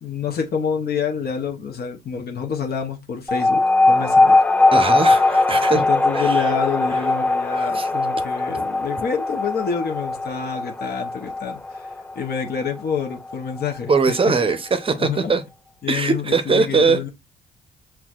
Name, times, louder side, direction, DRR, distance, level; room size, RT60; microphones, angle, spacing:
voice 1, 0.0-3.6 3.9-4.4 5.7-14.2 15.0-15.3 15.8-17.1, left 6 dB, 50° left, 0.8 m, -28 dB
sound 1, 3.3-14.2, left 2 dB, 10° left, 0.4 m, -20 dB
voice 2, 4.7-5.8 6.1-6.4 7.6-7.9 13.9-15.4 15.9-17.0, right 4 dB, 25° right, 0.7 m, -20 dB
5.8 x 2.2 x 2.4 m
cardioid pair, 90°, 20 cm